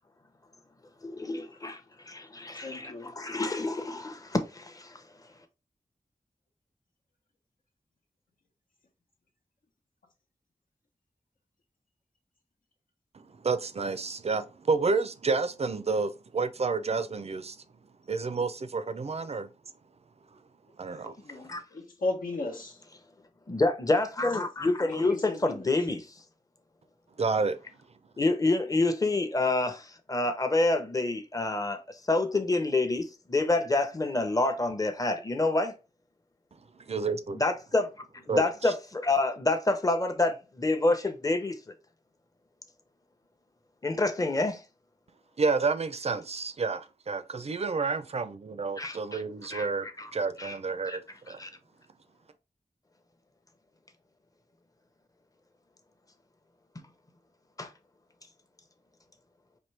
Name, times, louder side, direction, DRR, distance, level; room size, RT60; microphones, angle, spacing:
voice 1, 1.0-5.0 21.5-21.6 23.5-26.1 28.2-35.7 37.3-37.9 38.3-41.6 43.8-44.6 48.8-49.2 49.5-49.7 50.0-50.1 50.4-50.5 50.9-51.0 51.4-51.5 56.8-56.9 57.6-57.7, left 2 dB, 25° left, 0.7 m, -28 dB
voice 2, 2.5-3.1 21.2-22.8 24.8-25.7, left 2 dB, 85° left, 1.0 m, -35 dB
voice 3, 13.1-17.6 18.1-19.5 20.8-21.2 27.2-27.6 36.8-37.4 38.3-38.7 45.4-51.4, right 4 dB, 50° right, 0.4 m, -30 dB
4.3 x 2.6 x 3.2 m
wide cardioid pair, 85°, 14 cm